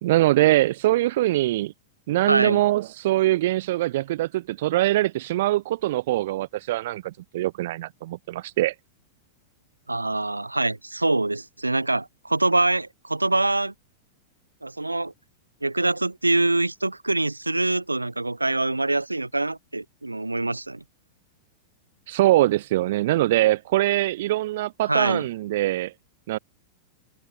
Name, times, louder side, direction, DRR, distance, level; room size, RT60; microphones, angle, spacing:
voice 1, 0.0-1.7 2.1-8.7 22.1-25.9 26.3-26.4, right 16 dB, 55° right, 1.8 m, -23 dB
voice 2, 2.3-2.6 9.9-13.7 14.6-15.1 15.6-20.8 24.9-25.3, right 2 dB, 85° right, 3.8 m, -24 dB
open air
figure-of-eight pair, 95°, 0 cm